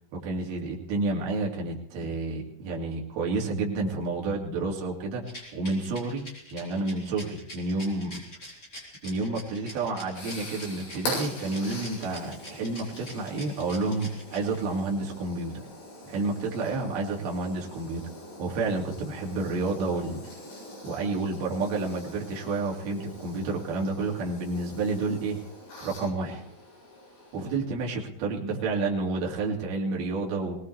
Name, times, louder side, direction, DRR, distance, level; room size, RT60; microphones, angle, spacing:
voice 1, 0.1-5.2 5.5-8.2 9.0-15.6 16.0-18.0 18.4-20.2 20.8-25.4 25.8-26.4 27.3-30.6, right 3 dB, 55° right, -1 dB, 3.9 m, -30 dB
Rattle, 5.2-14.8, left 1 dB, 20° left, 3.9 m, -44 dB
sound 1, 9.6-27.6, left 1 dB, 70° left, 9.9 m, -43 dB
22.5 x 19.0 x 3.3 m, 0.71 s
omnidirectional pair, 5.8 m